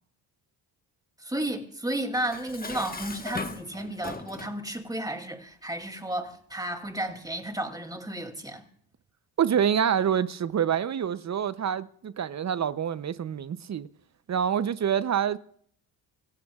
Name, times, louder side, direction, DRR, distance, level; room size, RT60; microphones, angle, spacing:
voice 1, 1.2-8.6, right 1 dB, 10° right, 2.6 m, -33 dB
Dishes pots and pans, 2.1-4.6, left 3 dB, 20° left, 1.3 m, -38 dB
voice 2, 9.4-13.9 14.3-15.4, right 8 dB, 40° right, 0.7 m, -26 dB
26.5 x 15.5 x 2.4 m
cardioid pair, 80°, 43 cm